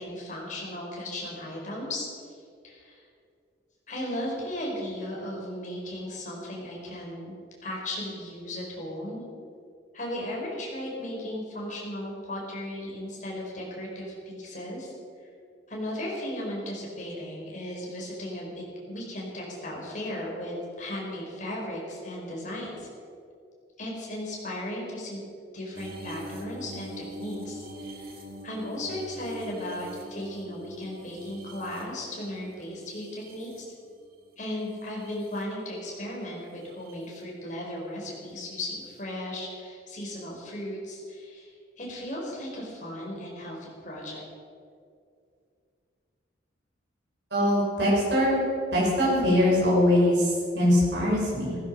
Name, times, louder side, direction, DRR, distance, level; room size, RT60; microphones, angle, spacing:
voice 1, 0.0-2.3 2.6-3.0 3.9-7.3 7.6-9.2 9.9-14.9 15.2-15.3 15.7-22.9 23.8-25.2 25.5-28.2 28.4-33.7 34.4-44.2, left 1 dB, 40° left, -3 dB, 4.6 m, -36 dB
sound 1, 25.7-34.1 34.6-35.4 36.6-36.9 38.7-38.8, right 1 dB, 50° right, 2.0 m, -44 dB
voice 2, 47.3-48.4 48.7-51.6, left 1 dB, 65° right, -5 dB, 5.1 m, -22 dB
16.0 x 15.0 x 5.4 m, 2.4 s
head